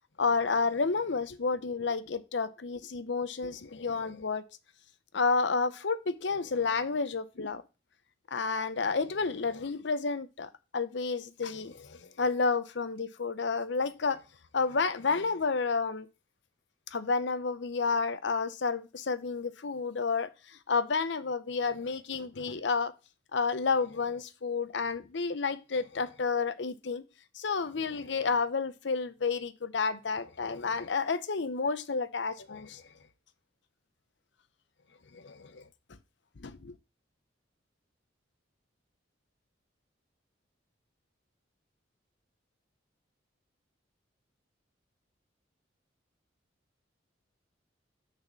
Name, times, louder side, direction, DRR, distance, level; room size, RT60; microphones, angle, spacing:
voice 1, 0.2-4.5 5.1-7.6 8.3-14.2 14.5-16.1 16.9-20.3 20.7-22.9 23.3-27.0 27.3-32.8 35.1-35.6 36.4-36.7, left 4 dB, 65° left, 0.6 m, -30 dB
6.5 x 4.2 x 6.0 m
head